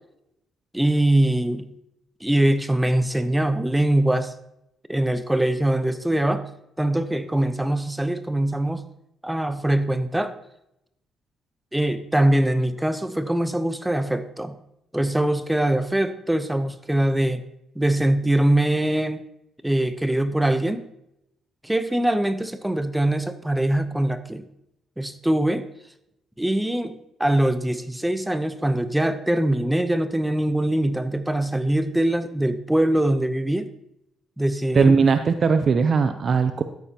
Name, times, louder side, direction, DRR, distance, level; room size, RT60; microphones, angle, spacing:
voice 1, 0.7-1.7 2.2-4.3 4.9-6.4 6.8-8.8 9.2-10.3 11.7-14.6 14.9-17.4 17.8-19.2 19.6-20.9 21.6-24.5 25.0-25.7 26.4-33.7 34.4-34.9, right 1 dB, 5° right, 11 dB, 0.8 m, -22 dB
voice 2, 34.7-36.6, right 5 dB, 50° right, 8 dB, 0.6 m, -19 dB
13.0 x 9.0 x 2.9 m, 0.81 s
cardioid pair, 90°, 0 cm